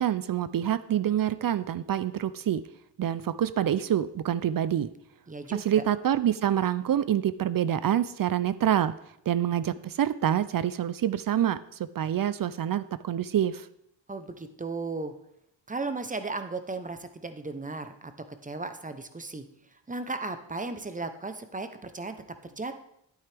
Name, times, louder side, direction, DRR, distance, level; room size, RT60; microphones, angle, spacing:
voice 1, 0.0-2.6 3.0-4.9 5.5-8.9 9.3-11.6 12.0-13.7, right 10 dB, 50° right, 15 dB, 0.5 m, -26 dB
voice 2, 5.3-5.8 14.1-15.1 15.7-18.1 18.4-19.5 19.9-22.2 22.4-22.7, right 3 dB, 20° right, 9 dB, 0.8 m, -35 dB
11.0 x 9.3 x 3.4 m, 0.77 s
cardioid pair, 95°, 45 cm